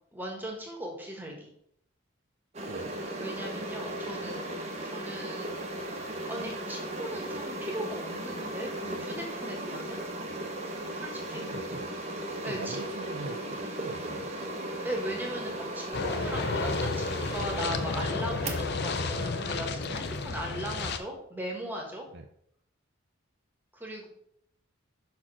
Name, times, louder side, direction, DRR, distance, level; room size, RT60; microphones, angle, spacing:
voice 1, 0.1-1.5 3.2-4.4 4.8-5.5 6.3-10.0 10.9-11.4 12.4-12.8 14.8-22.0 23.7-24.1, right 1 dB, 10° right, 0 dB, 1.3 m, -38 dB
sound 1, 2.5-21.0, right 1 dB, 30° right, 0.9 m, -37 dB
voice 2, 11.2-11.9 12.5-14.3 16.1-16.4 22.1-22.2, right 3 dB, 55° right, 3 dB, 0.5 m, -42 dB
sound 2, 15.9-21.0, left 4 dB, 50° left, 0.5 m, -32 dB
5.6 x 4.4 x 6.0 m, 0.72 s
head